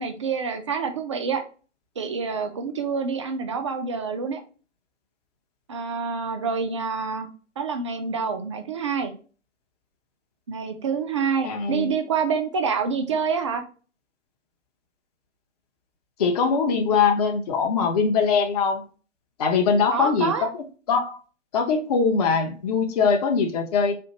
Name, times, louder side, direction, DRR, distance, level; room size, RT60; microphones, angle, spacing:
voice 1, 0.0-1.4 2.0-4.4 5.7-7.3 7.6-9.1 10.5-13.6 19.9-20.5, right 5 dB, 25° right, 6 dB, 0.4 m, -27 dB
voice 2, 11.4-12.0 16.2-18.8 19.4-20.5 20.9-21.2 21.5-23.9, left 5 dB, 35° left, 4 dB, 0.5 m, -22 dB
4.3 x 2.4 x 2.8 m, 0.37 s
figure-of-eight pair, 120°, 37 cm